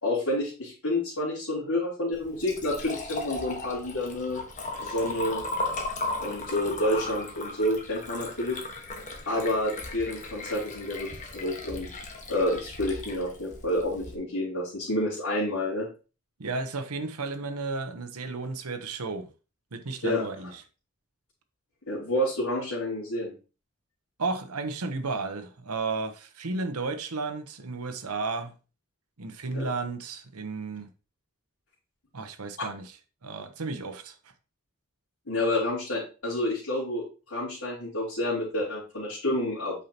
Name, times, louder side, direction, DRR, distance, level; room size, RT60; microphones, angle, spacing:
voice 1, 0.0-4.4 4.8-5.4 6.2-8.6 9.3-11.9 12.3-15.9 20.0-20.2 21.9-23.3 29.5-29.7 35.3-39.7, left 1 dB, 75° left, 3.5 m, -29 dB
Liquid, 2.1-14.1, left 2 dB, 35° left, 1.3 m, -36 dB
voice 2, 16.4-19.3 19.7-20.6 24.2-28.5 29.2-30.9 32.1-32.9 33.2-34.2, right 3 dB, 85° right, 1.0 m, -33 dB
8.4 x 5.6 x 2.9 m
head